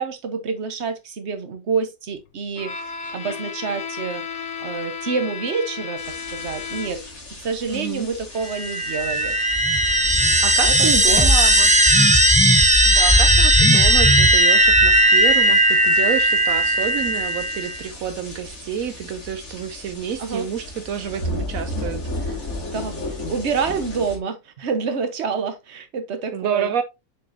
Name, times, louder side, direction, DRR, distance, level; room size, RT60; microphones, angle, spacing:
voice 1, 0.0-7.0 7.4-9.4 10.6-11.3 20.2-20.5 22.7-26.7, right 5 dB, 55° right, 1.3 m, -28 dB
Bowed string instrument, 2.6-7.2, left 6 dB, 55° left, 1.3 m, -33 dB
sound 1, 6.0-24.2, left 1 dB, 80° left, 2.9 m, -35 dB
voice 2, 7.7-8.1 10.4-12.1 12.5-22.5 26.3-26.8, right 8 dB, 80° right, 1.1 m, -29 dB
sound 2, 8.5-17.8, right 1 dB, 5° right, 0.6 m, -16 dB
6.8 x 6.1 x 2.7 m
omnidirectional pair, 1.5 m